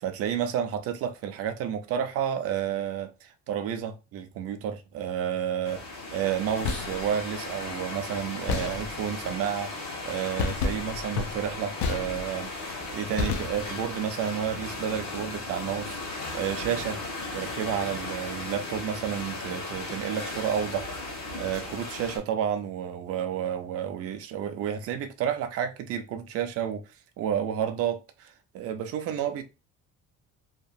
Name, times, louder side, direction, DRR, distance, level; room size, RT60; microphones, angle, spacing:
voice 1, 0.0-5.8 6.1-9.7 10.0-16.0 16.3-17.0 17.3-20.9 21.4-26.8 27.2-29.4, right 9 dB, 55° right, 0.4 m, -31 dB
sound 1, 5.6-22.2, left 2 dB, 55° left, 1.4 m, -36 dB
sound 2, 6.4-7.1 8.5-9.2 10.4-12.5 13.2-13.9, left 4 dB, 80° left, 0.6 m, -31 dB
2.9 x 2.3 x 2.5 m
cardioid pair, 165°, 29 cm